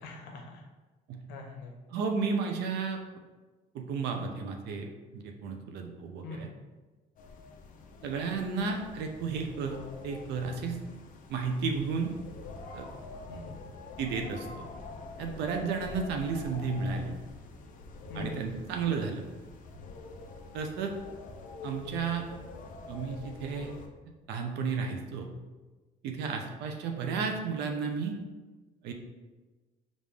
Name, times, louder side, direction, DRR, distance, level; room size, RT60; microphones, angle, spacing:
voice 1, 0.0-0.6 1.3-1.7 6.2-6.5 13.3-13.7 18.1-18.5, left 2 dB, 85° left, 1 dB, 0.8 m, -43 dB
voice 2, 1.9-3.0 3.7-4.9 5.1-6.5 8.0-9.8 10.0-10.8 11.3-12.1 12.7-12.9 14.0-14.5 15.2-17.1 18.1-19.2 20.5-20.9 21.6-22.2 22.9-23.7 24.3-25.3 26.0-28.2 28.8-28.9, right 5 dB, 80° right, 4 dB, 0.7 m, -32 dB
sound 1, 7.2-23.9, left 3 dB, 50° left, 0.6 m, -46 dB
5.1 x 2.6 x 3.5 m, 1.2 s
cardioid pair, 110°, 17 cm